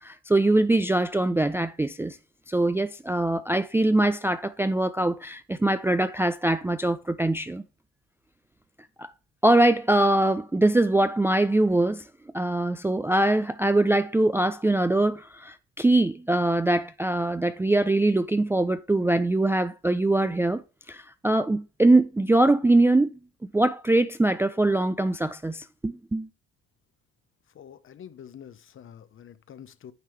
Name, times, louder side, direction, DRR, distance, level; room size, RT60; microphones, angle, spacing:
voice 1, 0.0-2.2 2.5-7.6 9.0-9.1 9.4-12.0 12.3-20.6 20.9-26.3, right 2 dB, 10° right, 0.4 m, -23 dB
voice 2, 27.5-29.9, left 9 dB, 40° left, 0.7 m, -46 dB
9.5 x 3.3 x 4.5 m
hypercardioid pair, 55°, 31 cm